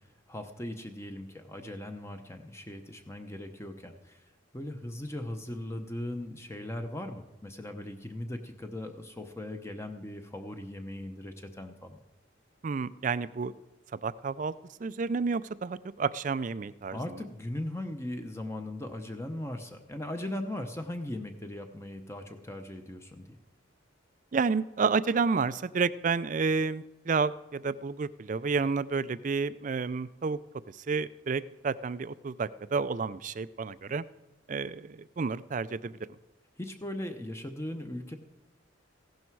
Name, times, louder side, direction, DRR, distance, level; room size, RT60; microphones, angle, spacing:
voice 1, 0.3-12.0 16.9-23.4 36.6-38.2, left 1 dB, 15° left, 6 dB, 0.8 m, -39 dB
voice 2, 12.6-13.5 14.0-14.5 14.8-17.0 24.3-30.4 30.7-34.0 34.5-35.9, right 5 dB, 40° right, 16 dB, 0.4 m, -30 dB
15.5 x 11.5 x 4.7 m, 1.1 s
head